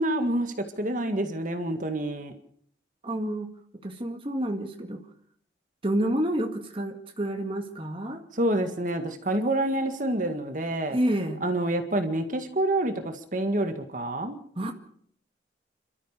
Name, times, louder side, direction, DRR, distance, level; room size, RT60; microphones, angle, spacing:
voice 1, 0.0-2.3 8.3-11.0 11.4-14.4, right 1 dB, 45° right, 6 dB, 2.0 m, -27 dB
voice 2, 3.0-3.5 3.8-5.0 5.8-8.2 10.9-11.4 14.6-14.7, right 1 dB, 30° right, 3 dB, 1.9 m, -29 dB
29.0 x 13.0 x 6.8 m, 0.63 s
head